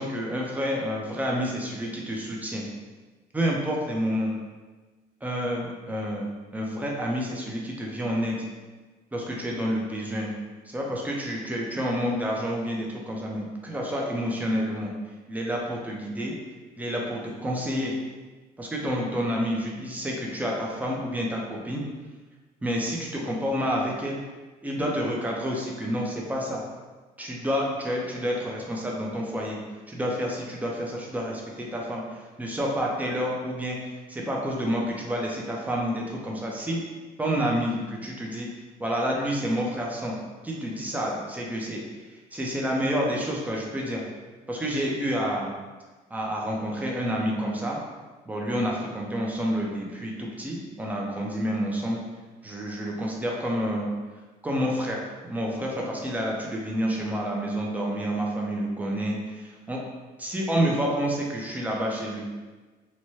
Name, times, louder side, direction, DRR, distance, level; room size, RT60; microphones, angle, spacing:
voice 1, 0.0-2.6 3.3-4.3 5.2-6.3 6.5-8.4 9.1-10.3 10.7-14.9 15.3-16.3 16.8-17.9 18.6-21.8 22.6-24.2 24.6-26.6 27.2-29.6 29.9-36.8 37.2-38.5 38.8-40.2 40.4-41.8 42.3-44.0 44.5-45.5 46.1-47.8 48.3-52.0 52.4-53.9 54.4-59.8 60.2-62.2, equal, 10° right, -2 dB, 0.5 m, -29 dB
2.7 x 2.2 x 3.1 m, 1.3 s
cardioid pair, 110°, 17 cm